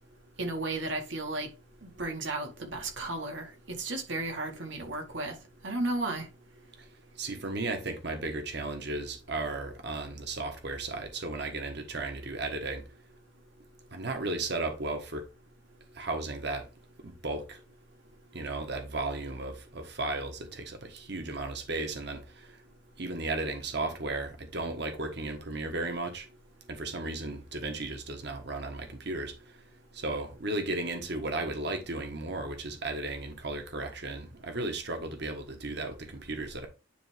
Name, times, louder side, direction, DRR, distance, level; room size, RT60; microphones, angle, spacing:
voice 1, 0.4-1.5 1.8-3.5 3.8-5.4 5.6-6.3, right 2 dB, 80° right, 1.9 m, -33 dB
voice 2, 7.2-12.8 13.9-15.3 15.9-16.7 17.0-17.6 18.3-22.6 23.0-26.3 26.7-29.6 29.9-36.7, right 2 dB, 65° right, 1.5 m, -35 dB
10.0 x 3.5 x 3.4 m
head